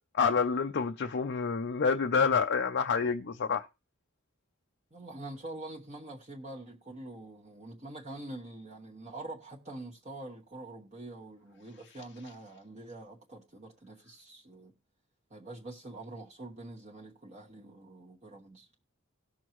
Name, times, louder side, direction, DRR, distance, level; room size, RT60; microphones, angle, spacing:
voice 1, 0.1-3.7, left 5 dB, 50° left, 0.5 m, -28 dB
voice 2, 4.9-14.7 15.3-18.7, right 2 dB, 35° right, 1.2 m, -45 dB
17.5 x 6.3 x 3.0 m
head